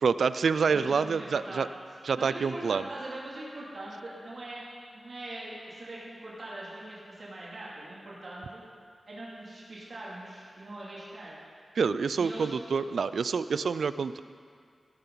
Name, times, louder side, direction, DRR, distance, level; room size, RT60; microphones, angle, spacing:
voice 1, 0.0-1.7 2.1-2.9 11.8-14.2, right 5 dB, 85° right, 14 dB, 0.4 m, -27 dB
voice 2, 0.7-1.7 2.1-4.6 4.9-8.6 9.1-11.4 12.2-12.5, right 1 dB, 50° right, -7 dB, 2.7 m, -42 dB
17.5 x 12.5 x 4.0 m, 2.2 s
wide cardioid pair, 125°, 0 cm